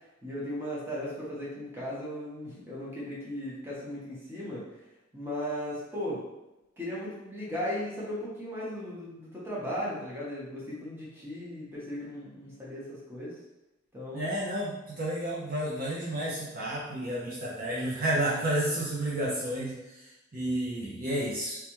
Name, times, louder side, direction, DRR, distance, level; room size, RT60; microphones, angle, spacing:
voice 1, 0.2-4.6 5.1-6.2 6.8-13.4 13.9-14.4, equal, 10° right, -7 dB, 1.1 m, -36 dB
voice 2, 14.1-21.6, right 1 dB, 45° right, -6 dB, 0.8 m, -31 dB
3.4 x 3.2 x 3.1 m, 0.94 s
head